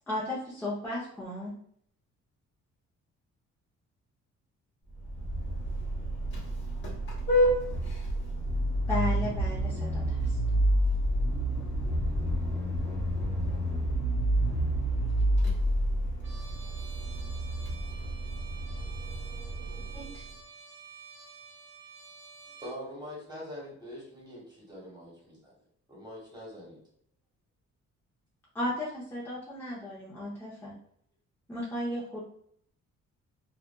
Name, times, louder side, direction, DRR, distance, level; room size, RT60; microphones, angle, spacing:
voice 1, 0.1-1.5 8.9-10.4 19.9-20.2 28.5-30.7 31.5-32.2, left 1 dB, 5° left, -7 dB, 0.7 m, -35 dB
Vehicle horn car horn honking, 4.9-20.3, equal, 40° left, 0.9 m, -29 dB
voice 2, 13.9-16.3 16.6-16.7, left 5 dB, 80° left, 3 dB, 0.5 m, -68 dB
Trumpet, 16.2-22.8, right 5 dB, 40° right, 0.7 m, -50 dB
voice 3, 22.4-25.5 25.9-26.8, equal, 15° right, -4 dB, 1.3 m, -44 dB
2.5 x 2.4 x 2.2 m, 0.65 s
cardioid pair, 90°, 30 cm